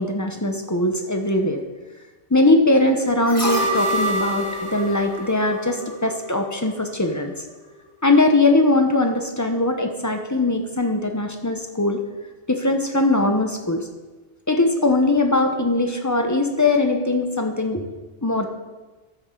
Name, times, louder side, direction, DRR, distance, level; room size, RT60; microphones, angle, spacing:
voice 1, 0.0-1.6 2.3-7.3 8.0-12.0 12.5-13.8 14.5-17.8 18.2-18.5, left 2 dB, 15° left, 4 dB, 0.9 m, -20 dB
sound 1, 3.3-6.4 6.7-6.8, equal, 65° left, 4.3 m, -26 dB
14.0 x 7.8 x 3.9 m, 1.2 s
omnidirectional pair, 1.2 m